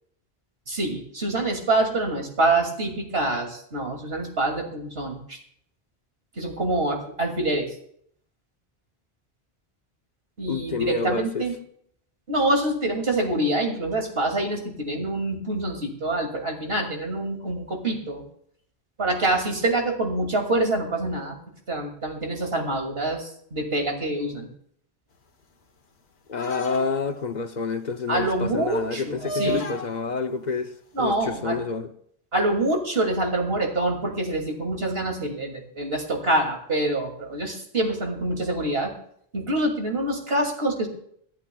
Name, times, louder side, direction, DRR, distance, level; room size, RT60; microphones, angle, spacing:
voice 1, 0.7-5.4 6.4-7.7 10.4-11.5 12.3-18.2 19.0-21.3 21.7-24.5 28.1-29.7 30.9-31.6 32.3-38.9 39.3-40.9, right 2 dB, 70° right, 2.8 m, -26 dB
voice 2, 10.5-11.5 26.3-31.9, left 4 dB, 50° left, 0.8 m, -29 dB
sound 1, 26.4-27.2 29.2-30.0 31.3-31.4, equal, 90° left, 1.5 m, -32 dB
26.5 x 10.5 x 2.3 m
omnidirectional pair, 1.0 m